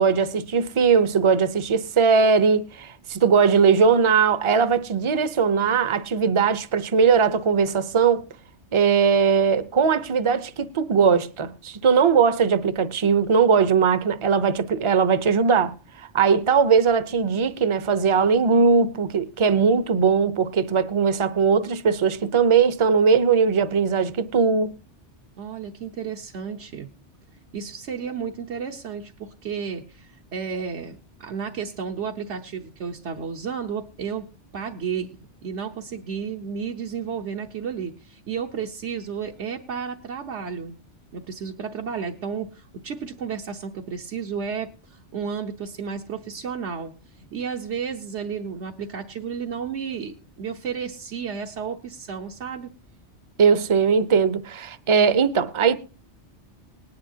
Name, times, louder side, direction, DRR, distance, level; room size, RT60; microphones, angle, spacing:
voice 1, 0.0-8.3 8.7-15.7 16.1-24.8 53.4-55.8, right 6 dB, 35° right, 0.6 m, -20 dB
voice 2, 25.4-26.9 27.5-34.3 34.5-40.8 41.1-52.7, right 6 dB, 80° right, 1.2 m, -32 dB
19.5 x 10.5 x 2.8 m
omnidirectional pair, 1.2 m